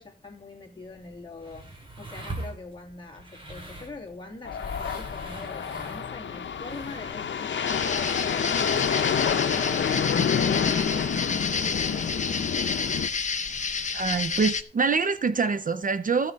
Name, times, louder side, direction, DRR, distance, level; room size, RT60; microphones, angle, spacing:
voice 1, 0.0-1.7 2.0-8.5 9.3-12.7, left 3 dB, 25° left, 2.3 m, -43 dB
sound 1, 0.8-7.2, right 2 dB, 30° right, 2.8 m, -42 dB
sound 2, 4.5-13.1, left 7 dB, 85° left, 0.7 m, -28 dB
sound 3, 7.7-14.6, left 5 dB, 40° left, 0.6 m, -30 dB
voice 2, 13.9-16.3, right 5 dB, 45° right, 0.5 m, -25 dB
14.0 x 6.7 x 4.5 m
wide cardioid pair, 150°, 19 cm